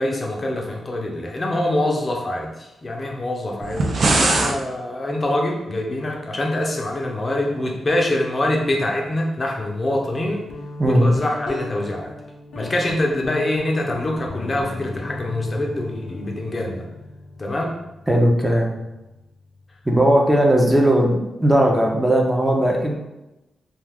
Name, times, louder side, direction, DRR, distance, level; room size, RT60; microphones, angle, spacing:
voice 1, 0.0-10.5 10.8-12.1 12.5-16.9 17.4-17.8, left 1 dB, 35° left, 0 dB, 0.5 m, -24 dB
sound 1, 3.6-4.6, right 2 dB, 60° right, 0.4 m, -19 dB
Guitar, 10.5-20.0, left 2 dB, 85° left, 0.6 m, -37 dB
voice 2, 18.1-18.7 19.9-22.9, right 1 dB, 10° right, 0 dB, 0.5 m, -17 dB
2.3 x 2.3 x 3.3 m, 0.98 s
cardioid pair, 70°, 0 cm